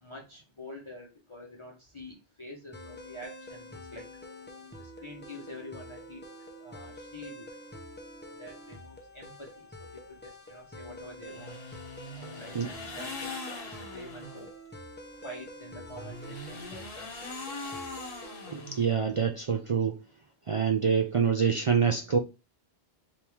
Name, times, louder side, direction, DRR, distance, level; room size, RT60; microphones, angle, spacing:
voice 1, 0.0-4.0 4.8-6.2 6.6-7.5 8.4-9.7 9.9-11.6 12.2-14.5 15.2-17.3, left 1 dB, 30° left, 1.0 m, -46 dB
sound 1, 2.7-18.8, equal, 10° left, 0.6 m, -47 dB
sound 2, 11.3-14.4 15.9-19.2, left 2 dB, 60° left, 1.4 m, -41 dB
voice 2, 18.5-20.0 20.5-22.2, right 6 dB, 55° right, 0.3 m, -26 dB
4.3 x 2.9 x 3.5 m
omnidirectional pair, 1.1 m